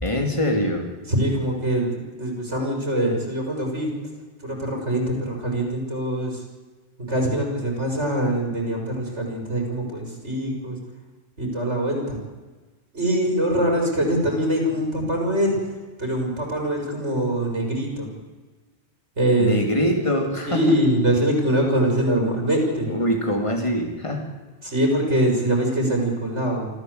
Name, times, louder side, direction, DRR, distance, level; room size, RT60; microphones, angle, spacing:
voice 1, 0.0-0.9 19.4-20.6 22.9-24.3, equal, 25° left, 4 dB, 3.1 m, -23 dB
voice 2, 1.1-3.9 4.4-6.4 7.1-10.8 11.4-12.2 12.9-15.7 16.0-18.1 19.2-19.6 20.5-22.9 24.6-26.7, right 1 dB, 80° right, 1 dB, 5.9 m, -23 dB
25.5 x 14.0 x 8.1 m, 1.3 s
omnidirectional pair, 1.2 m